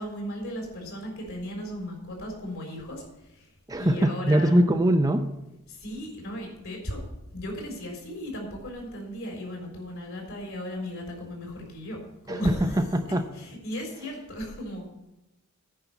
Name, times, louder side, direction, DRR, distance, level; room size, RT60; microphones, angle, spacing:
voice 1, 0.0-3.0 3.8-4.6 5.8-7.0 7.3-12.0 12.3-12.6 13.6-14.9, left 1 dB, 65° left, 0 dB, 4.0 m, -36 dB
voice 2, 3.7-5.2 12.3-13.3, right 1 dB, 15° right, 7 dB, 0.5 m, -22 dB
9.7 x 5.7 x 8.1 m, 0.94 s
head